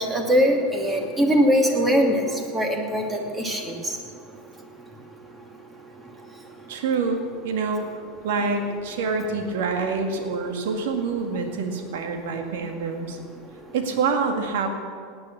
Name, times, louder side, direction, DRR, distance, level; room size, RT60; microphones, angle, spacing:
voice 1, 0.1-2.2 2.5-3.0 3.4-3.6, equal, 15° right, 2 dB, 2.6 m, -20 dB
voice 2, 6.7-7.9 8.2-13.2 13.7-14.7, right 4 dB, 65° right, 4 dB, 2.0 m, -26 dB
18.5 x 9.2 x 6.9 m, 2.1 s
figure-of-eight pair, 80°, 0 cm